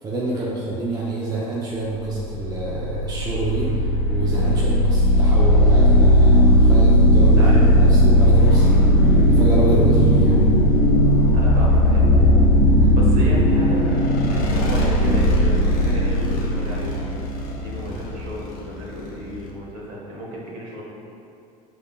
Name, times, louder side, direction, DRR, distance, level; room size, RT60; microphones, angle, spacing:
voice 1, 0.0-3.8 4.1-8.8 9.3-10.4 12.8-13.0 17.8-18.0, right 2 dB, 20° right, -5 dB, 0.6 m, -26 dB
sound 1, 2.2-19.5, equal, 50° left, 0.7 m, -17 dB
voice 2, 11.3-12.3 12.9-17.1 17.6-20.8, equal, 50° right, -4 dB, 1.3 m, -34 dB
5.2 x 3.8 x 2.3 m, 2.6 s
hypercardioid pair, 80°, 19 cm